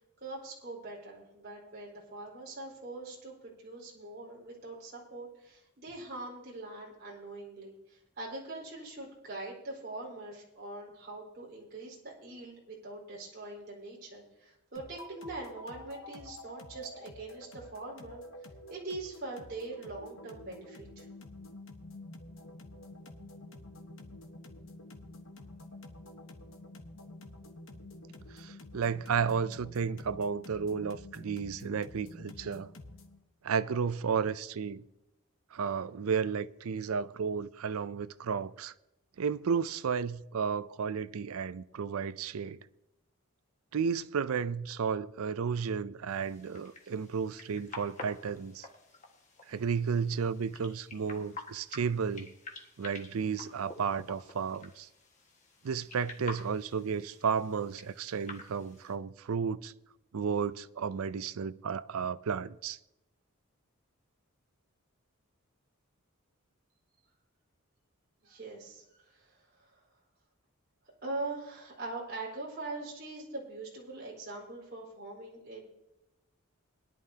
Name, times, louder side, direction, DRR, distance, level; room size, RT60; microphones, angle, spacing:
voice 1, 0.2-18.2 18.7-21.1 68.2-69.8 71.0-75.6, right 2 dB, 45° right, 4.4 m, -43 dB
sound 1, 14.8-33.2, left 1 dB, 65° left, 1.2 m, -49 dB
voice 2, 28.3-32.7 33.4-34.8 35.5-38.7 39.2-42.6 43.7-48.7 49.5-52.3 52.8-54.9 55.6-59.7 60.1-62.8, right 6 dB, 80° right, 0.5 m, -33 dB
sound 2, 46.1-58.9, left 3 dB, 35° left, 1.6 m, -49 dB
21.0 x 11.0 x 2.8 m
head